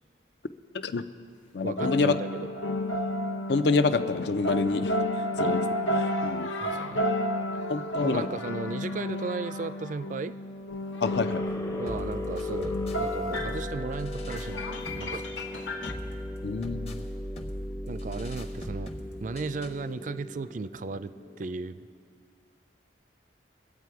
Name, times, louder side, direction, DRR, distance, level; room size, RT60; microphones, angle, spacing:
voice 1, 0.7-1.0 1.5-2.2 3.5-4.9 5.4-5.7 5.9-6.5 7.7-8.3 11.0-11.4 16.4-17.0, left 4 dB, 65° left, 11 dB, 0.5 m, -27 dB
voice 2, 1.6-2.5 6.6-7.1 8.0-10.4 11.8-14.6 15.0-15.3 17.9-18.9 19.2-21.9, right 4 dB, 40° right, 14 dB, 0.4 m, -35 dB
sound 1, 1.8-15.9, left 1 dB, 85° left, 0.9 m, -32 dB
sound 2, 11.0-21.9, left 2 dB, 15° left, 0.6 m, -38 dB
sound 3, 11.9-19.9, equal, 35° left, 0.9 m, -39 dB
22.5 x 8.3 x 4.7 m, 2.3 s
head